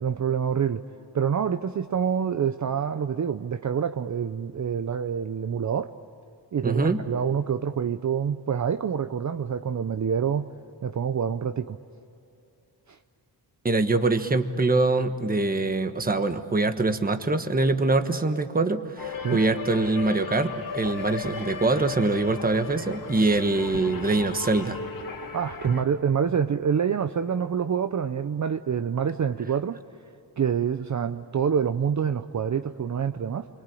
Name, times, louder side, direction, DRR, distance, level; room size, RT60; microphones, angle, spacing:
voice 1, 0.0-0.8 1.1-5.9 6.5-10.5 10.8-11.8 12.9-13.0 19.2-19.4 25.3-29.8 30.4-33.5, right 7 dB, 45° right, 9 dB, 0.7 m, -26 dB
voice 2, 6.6-7.0 13.6-24.8, right 3 dB, 20° right, 8 dB, 1.3 m, -24 dB
sound 1, 19.0-25.8, left 4 dB, 55° left, 2.5 m, -36 dB
29.0 x 23.5 x 8.5 m, 2.8 s
wide cardioid pair, 125°, 42 cm